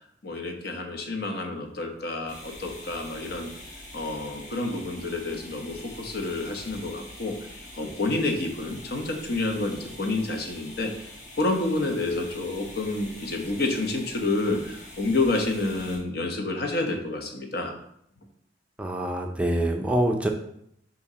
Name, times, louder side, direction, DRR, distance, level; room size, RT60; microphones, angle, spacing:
voice 1, 0.2-3.5 3.9-7.3 7.7-11.1 11.4-17.8, left 2 dB, 60° left, 3 dB, 1.0 m, -29 dB
sound 1, 2.3-16.0, left 1 dB, 45° left, 1.4 m, -44 dB
voice 2, 18.8-20.3, right 1 dB, 5° right, 3 dB, 0.5 m, -25 dB
6.9 x 2.9 x 4.9 m, 0.73 s
head